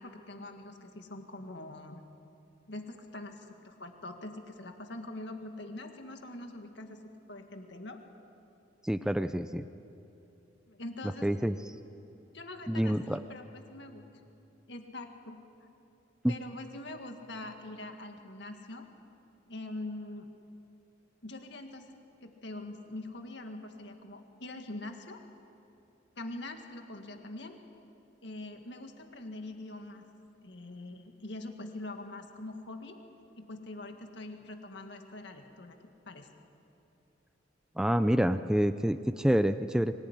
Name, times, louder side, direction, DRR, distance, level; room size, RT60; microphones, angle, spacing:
voice 1, 0.0-2.0 2.7-7.0 7.3-8.0 10.7-11.3 12.3-14.0 14.7-15.4 16.3-18.9 19.5-20.3 21.2-25.2 26.2-27.6 28.2-30.0 30.4-33.0 33.4-36.3, left 2 dB, 65° left, 4 dB, 1.9 m, -43 dB
voice 2, 8.8-9.7 11.2-11.6 12.7-13.2 16.2-16.3 37.8-39.9, equal, 5° right, 9 dB, 0.5 m, -27 dB
25.0 x 19.5 x 10.0 m, 2.8 s
head